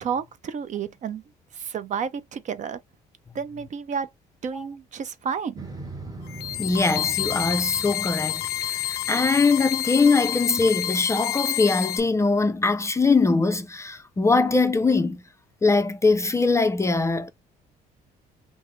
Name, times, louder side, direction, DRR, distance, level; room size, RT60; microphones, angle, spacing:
voice 1, 0.0-1.2 1.5-2.8 3.3-4.1 4.4-5.7, right 6 dB, 45° right, 0.6 m, -31 dB
Motorcycle, 5.6-10.8, right 2 dB, 20° right, 1.0 m, -41 dB
sound 1, 6.2-12.0, left 13 dB, 70° left, 0.5 m, -28 dB
voice 2, 6.6-15.2 15.6-17.3, left 3 dB, 15° left, 0.4 m, -22 dB
3.5 x 2.0 x 3.1 m
cardioid pair, 110°, 17 cm